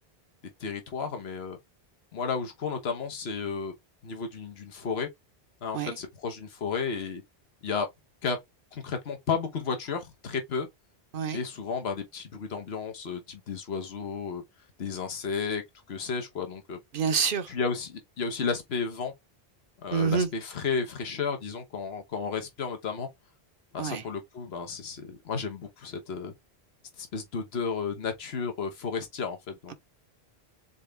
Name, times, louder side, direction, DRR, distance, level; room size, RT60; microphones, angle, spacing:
voice 1, 0.6-1.6 2.1-3.7 4.0-5.1 5.6-7.2 7.6-7.9 8.2-8.4 8.7-10.7 11.3-14.4 14.8-15.6 15.9-16.8 17.5-19.1 19.8-23.1 23.7-26.3 27.0-29.7, left 5 dB, 85° left, 1.3 m, -33 dB
voice 2, 16.9-17.5 19.9-20.3 23.8-24.0, right 6 dB, 60° right, 0.9 m, -27 dB
4.0 x 3.9 x 3.4 m
omnidirectional pair, 1.0 m